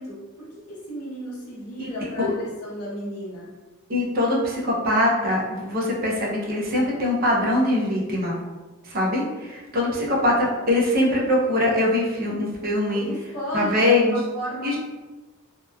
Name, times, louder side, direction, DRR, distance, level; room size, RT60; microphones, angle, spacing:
voice 1, 0.0-3.5 12.9-14.8, equal, 85° left, -5 dB, 0.9 m, -33 dB
voice 2, 3.9-8.4 8.8-13.1 13.5-14.2 14.6-14.8, left 1 dB, 40° right, -3 dB, 0.5 m, -22 dB
2.8 x 2.1 x 2.2 m, 1.2 s
head